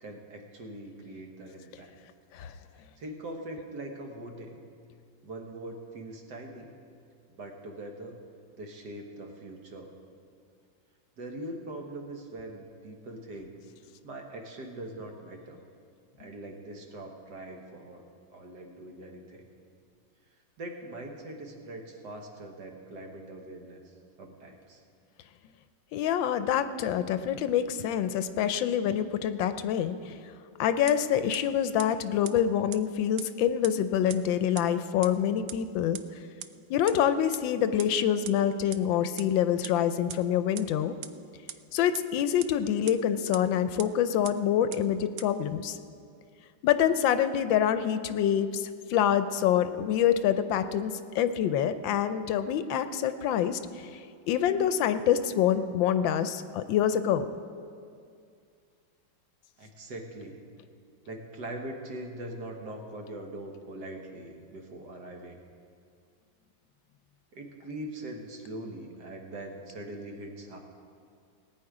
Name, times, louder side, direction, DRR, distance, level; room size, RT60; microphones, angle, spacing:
voice 1, 0.0-1.9 3.0-4.6 5.2-6.7 7.3-8.2 8.6-9.9 11.2-13.6 14.0-15.6 16.2-18.0 18.3-19.5 20.6-23.9 24.2-24.8 59.6-60.4 61.1-65.4 67.3-70.6, right 1 dB, 60° right, 2 dB, 1.8 m, -42 dB
voice 2, 25.9-30.1 30.6-36.0 36.7-40.9 41.7-45.8 46.6-53.6 54.3-57.3, left 9 dB, 80° left, 11 dB, 1.3 m, -26 dB
sound 1, 30.9-31.0 31.3-31.4 31.8-31.9 32.2-32.3 32.7-32.8 33.2-33.3 33.6-33.7 34.1-34.2 34.6-34.7 35.0-35.1 35.5-35.6 35.9-36.0 36.4-36.5 36.9-37.0 37.3-37.4 37.8-37.9 38.2-38.3 38.7-38.8 39.2-39.3 39.6-39.7 40.1-40.2 40.5-40.6 41.0-41.1 41.5-41.6 41.9-42.0 42.4-42.5 42.9-43.0 43.3-43.4 43.8-43.9 44.2-44.3 44.7-44.8 45.2-45.3, right 11 dB, 80° right, 0.8 m, -38 dB
19.0 x 9.1 x 4.8 m, 2.3 s
omnidirectional pair, 2.1 m